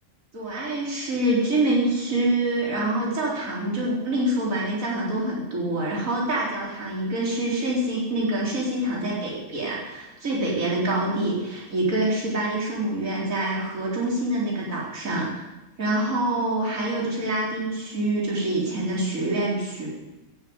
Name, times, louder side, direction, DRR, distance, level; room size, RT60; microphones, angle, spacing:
voice 1, 0.3-15.4 15.8-19.9, right 1 dB, 70° right, -4 dB, 4.2 m, -26 dB
15.5 x 10.5 x 8.1 m, 1.0 s
omnidirectional pair, 1.5 m